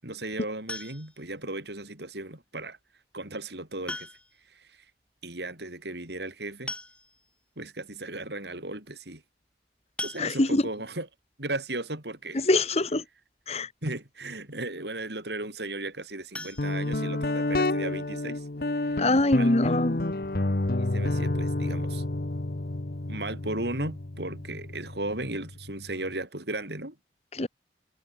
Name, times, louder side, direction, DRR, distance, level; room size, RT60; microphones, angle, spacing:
voice 1, 0.0-2.8 3.1-4.1 4.5-4.8 5.2-6.7 7.6-9.2 10.0-11.1 11.4-12.5 13.8-18.5 18.8-19.1 19.3-19.5 20.8-22.0 23.1-27.0, right 2 dB, 70° right, 7.4 m, -36 dB
sound 1, 0.7-1.3 2.8-2.9 3.9-4.5 4.8-4.9 5.2-5.3 6.3-6.4 6.7-7.4 7.9-8.0 8.4-8.6 10.0-10.8 16.3-17.5 17.9-18.0 18.4-18.5 18.9-19.0, left 2 dB, 5° left, 2.1 m, -40 dB
voice 2, 10.2-10.6 12.3-13.0 13.5-13.7 19.0-20.0 27.3-27.5, left 2 dB, 35° left, 1.3 m, -24 dB
Guitar, 16.6-26.1, left 2 dB, 55° left, 1.1 m, -30 dB
head